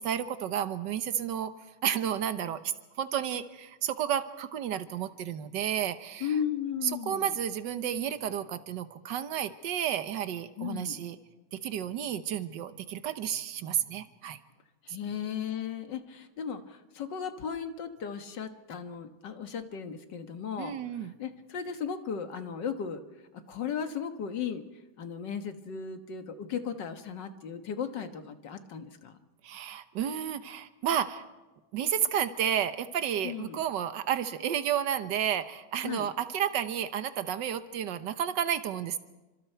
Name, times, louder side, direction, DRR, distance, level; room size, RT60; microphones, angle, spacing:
voice 1, 0.0-1.5 1.8-6.3 6.8-11.2 11.5-14.4 14.9-15.0 20.6-21.1 29.4-31.2 31.7-39.0, right 9 dB, 90° right, 11 dB, 1.6 m, -31 dB
voice 2, 6.2-7.3 10.6-11.0 14.8-20.7 21.2-23.0 23.5-24.6 25.0-29.2 33.2-33.6 35.8-36.1, left 7 dB, 90° left, 8 dB, 2.1 m, -36 dB
28.5 x 26.0 x 4.5 m, 1.1 s
omnidirectional pair, 1.9 m